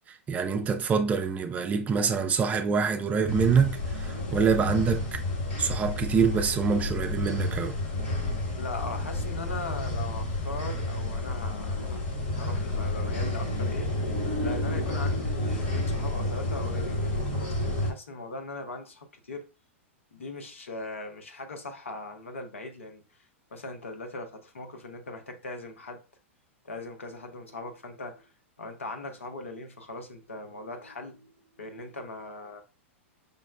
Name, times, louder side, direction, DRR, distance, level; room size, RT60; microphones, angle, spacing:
voice 1, 0.1-5.1 5.6-7.7, right 6 dB, 20° right, 0.4 m, -25 dB
sound 1, 3.3-17.9, left 2 dB, 55° left, 1.3 m, -30 dB
voice 2, 8.6-12.0 12.3-13.9 14.4-19.4 20.1-23.0 23.5-26.0 26.6-28.3 28.6-32.6, left 2 dB, 75° left, 0.7 m, -40 dB
5.2 x 2.0 x 2.3 m
figure-of-eight pair, 100°, 7 cm